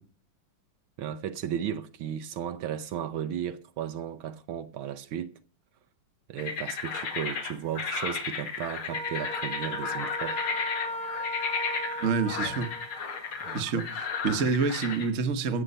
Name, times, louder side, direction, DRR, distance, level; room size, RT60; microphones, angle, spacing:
voice 1, 1.0-5.3 6.3-10.4 13.4-13.7, right 9 dB, 75° right, 1.6 m, -35 dB
sound 1, 6.4-15.1, left 5 dB, 85° left, 2.8 m, -34 dB
Wind instrument woodwind instrument, 8.9-13.0, left 1 dB, 5° left, 0.7 m, -36 dB
voice 2, 12.0-12.7 13.5-15.6, right 5 dB, 45° right, 1.3 m, -27 dB
15.5 x 7.6 x 5.4 m
omnidirectional pair, 2.3 m